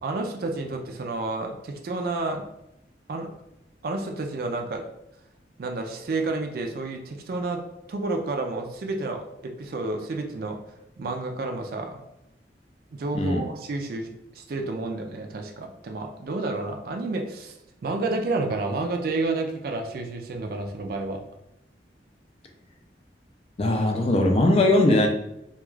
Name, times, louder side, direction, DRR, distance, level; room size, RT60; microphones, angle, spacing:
voice 1, 0.0-2.4 3.1-3.3 3.8-4.9 5.6-7.6 7.9-10.6 11.0-12.0 12.9-17.6 17.8-21.2, right 2 dB, 55° right, 4 dB, 0.4 m, -30 dB
voice 2, 23.6-25.1, left 1 dB, 35° left, 3 dB, 0.3 m, -20 dB
2.4 x 2.3 x 3.1 m, 0.83 s
head